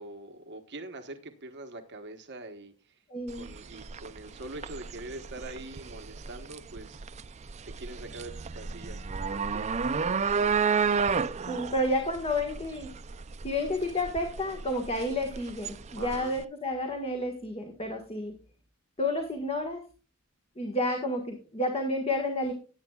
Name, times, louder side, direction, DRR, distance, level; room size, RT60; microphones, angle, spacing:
voice 1, 0.0-2.7 3.3-7.0 7.6-9.0 9.3-9.7 10.0-10.6 16.0-16.3, right 2 dB, 55° right, 7 dB, 1.2 m, -43 dB
voice 2, 3.1-3.5 11.5-12.9 13.4-18.3 19.0-19.8 20.6-22.5, left 1 dB, 30° left, 3 dB, 1.5 m, -30 dB
sound 1, 3.3-16.4, right 5 dB, 30° right, 0.4 m, -32 dB
17.5 x 8.7 x 2.3 m, 0.36 s
head